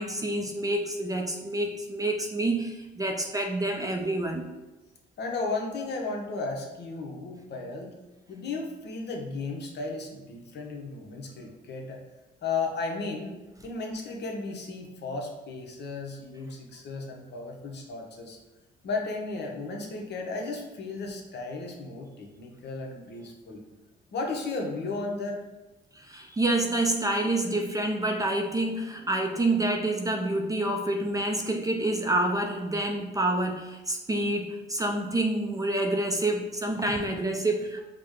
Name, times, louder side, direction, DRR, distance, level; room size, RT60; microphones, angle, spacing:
voice 1, 0.0-4.5 25.9-37.8, right 1 dB, 15° right, 3 dB, 0.4 m, -28 dB
voice 2, 5.2-7.9 8.3-12.0 12.4-13.4 13.6-18.4 18.8-23.6 24.1-25.4, left 3 dB, 60° left, 1 dB, 0.8 m, -34 dB
4.8 x 2.1 x 3.6 m, 1.1 s
cardioid pair, 90°, 20 cm